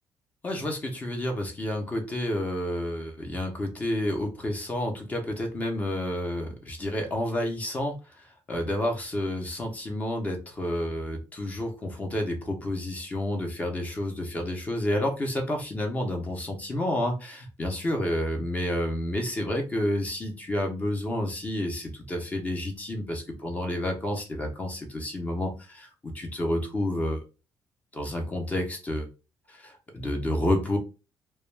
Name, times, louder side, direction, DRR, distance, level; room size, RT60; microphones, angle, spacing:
voice 1, 0.4-27.2 27.9-29.1 29.5-30.8, left 1 dB, 20° left, 3 dB, 0.6 m, -30 dB
2.2 x 2.1 x 3.1 m, 0.30 s
cardioid pair, 145°, 7 cm